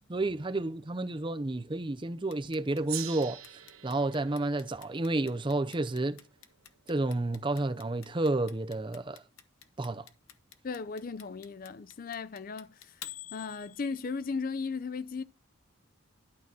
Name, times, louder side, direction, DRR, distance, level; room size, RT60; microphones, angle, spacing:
voice 1, 0.1-3.4 3.8-6.2 6.9-9.2 9.8-10.1, right 2 dB, 25° right, 0.6 m, -31 dB
Clock, 2.3-14.3, left 12 dB, 80° left, 1.1 m, -49 dB
Gong, 2.9-7.6, right 13 dB, 80° right, 1.2 m, -45 dB
voice 2, 10.6-13.0 13.3-15.2, left 4 dB, 40° left, 0.4 m, -36 dB
11.5 x 4.0 x 6.1 m
head